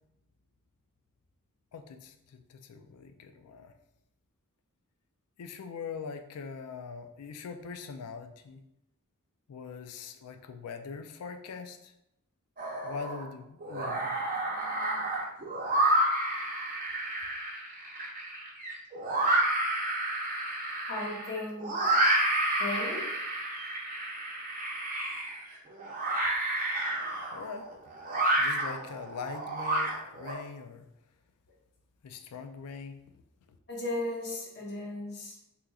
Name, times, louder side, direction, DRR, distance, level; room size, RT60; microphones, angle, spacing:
voice 1, 1.7-3.7 5.4-8.6 9.5-11.9 12.8-14.2 27.3-27.8 28.4-30.9 32.0-33.0, left 5 dB, 85° left, 7 dB, 0.4 m, -42 dB
sound 1, 12.6-13.2 13.6-30.3, right 1 dB, 40° right, 0.7 m, -30 dB
voice 2, 20.9-21.9 22.6-23.1 33.7-35.3, left 2 dB, 50° left, -2 dB, 0.9 m, -36 dB
3.7 x 2.9 x 2.3 m, 0.83 s
head